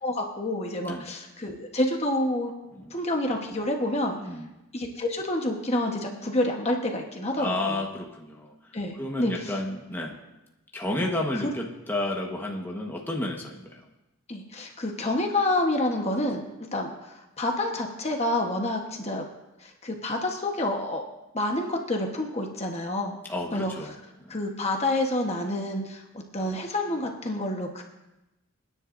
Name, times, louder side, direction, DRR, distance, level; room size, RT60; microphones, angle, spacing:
voice 1, 0.0-2.5 2.9-4.2 4.7-7.8 8.7-9.6 11.0-11.1 11.3-11.4 14.3-16.4 16.7-19.3 19.6-21.0 21.3-23.2 23.5-23.7 24.3-26.0 26.3-27.8, left 1 dB, 30° left, 2 dB, 1.2 m, -28 dB
voice 2, 4.2-4.5 7.4-8.5 9.0-10.2 10.7-13.8 23.3-24.0 24.2-24.4, left 1 dB, 10° left, -1 dB, 1.3 m, -31 dB
29.0 x 10.0 x 2.6 m, 0.98 s
head